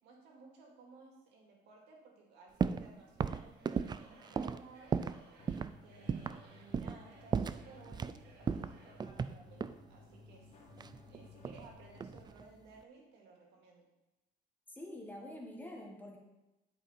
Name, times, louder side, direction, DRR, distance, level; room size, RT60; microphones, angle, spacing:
voice 1, 0.0-10.5 11.1-13.9, right 3 dB, 90° right, 0 dB, 2.2 m, -58 dB
sound 1, 2.6-2.9 3.2-5.2 5.5-5.7 6.1-6.4 6.7-7.0 7.3-8.2 8.5-9.8 10.8-11.7 12.0-12.4, right 6 dB, 25° right, 0.3 m, -35 dB
Singing / Crowd, 3.5-9.2, right 4 dB, 70° right, 2.1 m, -62 dB
sound 2, 5.4-12.2, left 4 dB, 40° left, 1.6 m, -58 dB
voice 2, 14.7-16.2, left 1 dB, 10° left, 0 dB, 1.7 m, -46 dB
11.5 x 5.0 x 4.3 m, 1.0 s
cardioid pair, 110°, 17 cm